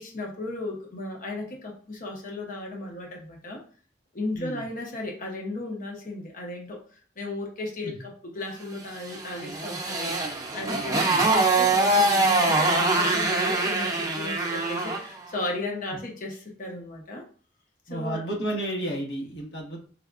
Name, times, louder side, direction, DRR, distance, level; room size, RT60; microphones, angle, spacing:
voice 1, 0.0-3.6 4.1-17.2 17.9-18.2, left 2 dB, 50° left, 0 dB, 0.8 m, -35 dB
voice 2, 4.3-4.6 7.8-8.0 11.1-11.3 17.9-19.8, right 1 dB, 80° left, -3 dB, 1.2 m, -32 dB
Motorcycle, 9.0-15.1, right 2 dB, 20° right, 0.6 m, -23 dB
4.7 x 2.2 x 2.4 m, 0.42 s
head